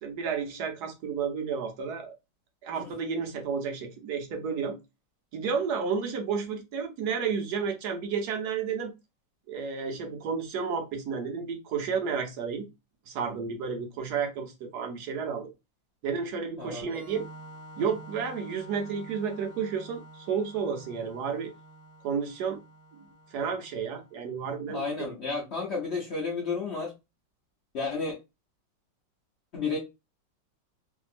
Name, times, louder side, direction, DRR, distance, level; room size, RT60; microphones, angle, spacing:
voice 1, 0.0-2.1 2.6-4.8 5.3-8.9 9.5-12.6 13.1-15.5 16.0-17.3 17.8-21.5 22.0-22.6 22.9-24.8, right 6 dB, 70° right, 1.1 m, -31 dB
voice 2, 16.6-16.9 24.7-26.9 27.7-28.2 29.5-29.8, left 4 dB, 55° left, 0.7 m, -32 dB
Organ, 16.8-24.3, right 1 dB, 35° right, 1.2 m, -49 dB
3.0 x 2.7 x 2.4 m
omnidirectional pair, 2.0 m